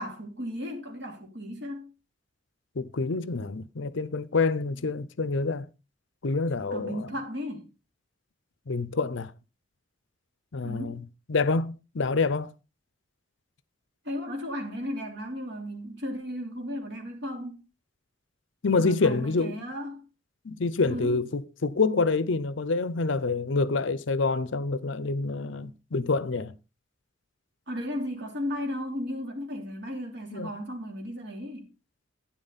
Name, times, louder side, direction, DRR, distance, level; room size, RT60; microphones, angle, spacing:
voice 1, 0.0-1.9 6.7-7.7 10.6-11.0 14.0-17.6 18.8-20.0 20.9-21.2 27.7-31.7, equal, 55° right, 3.3 m, -35 dB
voice 2, 2.8-5.7 6.2-7.1 8.7-9.3 10.5-12.5 18.6-19.6 20.4-26.5 30.3-30.6, left 3 dB, 65° left, 0.6 m, -27 dB
11.5 x 9.6 x 4.1 m
head